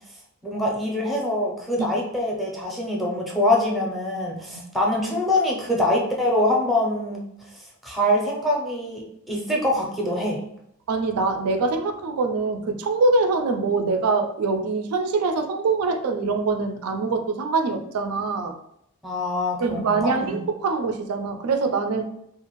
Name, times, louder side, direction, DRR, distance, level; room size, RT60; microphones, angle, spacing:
voice 1, 0.4-7.2 7.8-10.4 19.0-20.4, left 1 dB, ahead, -2 dB, 0.5 m, -24 dB
voice 2, 10.9-18.6 19.6-22.1, right 3 dB, 85° right, 7 dB, 0.4 m, -24 dB
2.5 x 2.4 x 3.0 m, 0.76 s
head